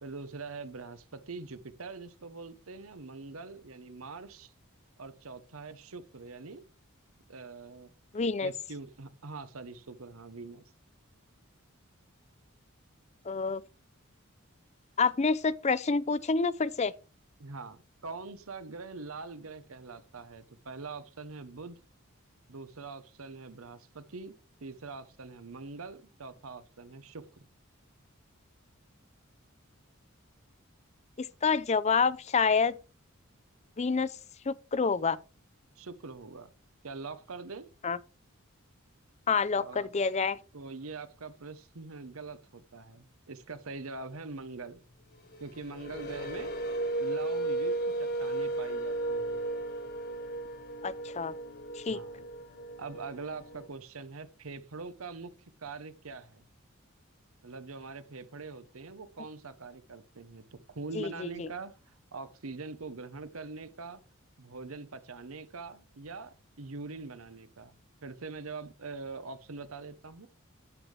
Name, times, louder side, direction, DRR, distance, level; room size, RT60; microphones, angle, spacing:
voice 1, 0.0-4.5 5.0-6.6 7.3-7.9 8.4-10.6 17.4-21.8 22.5-24.3 24.6-27.5 35.8-36.5 36.8-37.7 39.5-39.9 40.5-44.8 45.4-46.5 47.0-49.4 51.9-52.2 52.8-55.3 55.6-56.4 57.4-61.7 62.1-64.0 64.4-70.3, right 4 dB, 85° right, 1.0 m, -43 dB
voice 2, 8.1-8.5 13.3-13.6 15.0-16.9 31.2-32.8 33.8-34.1 34.5-35.2 37.8-38.0 39.3-40.4 50.8-51.3 51.8-52.0 60.9-61.5, left 5 dB, 30° left, 0.5 m, -28 dB
sound 1, 45.2-53.7, right 2 dB, 50° left, 1.6 m, -35 dB
10.0 x 8.3 x 3.3 m
head